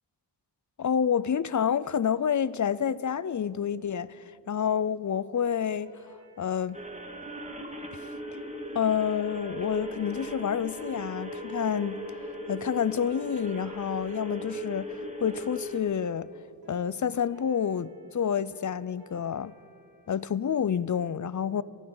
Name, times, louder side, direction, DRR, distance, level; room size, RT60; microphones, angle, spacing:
voice 1, 0.8-5.9 6.4-6.8 8.7-12.0 12.5-16.3 16.7-19.5 20.1-21.6, left 8 dB, 45° left, 0.5 m, -28 dB
sound 1, 5.3-20.2, equal, 60° right, 3.5 m, -58 dB
sound 2, 6.7-15.8, equal, 15° right, 1.8 m, -38 dB
24.0 x 12.5 x 3.9 m
wide cardioid pair, 60°, 41 cm